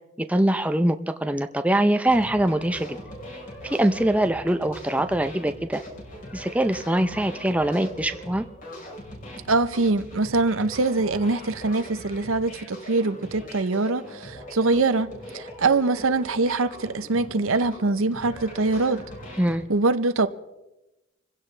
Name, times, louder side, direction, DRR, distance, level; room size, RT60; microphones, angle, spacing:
voice 1, 0.2-3.0 3.6-5.8 6.3-8.5 19.4-19.6, right 1 dB, 5° right, 0.5 m, -23 dB
sound 1, 2.1-19.6, equal, 40° left, 4.6 m, -40 dB
voice 2, 9.5-19.0 19.7-20.3, right 3 dB, 90° right, 0.8 m, -23 dB
26.5 x 16.0 x 3.3 m
head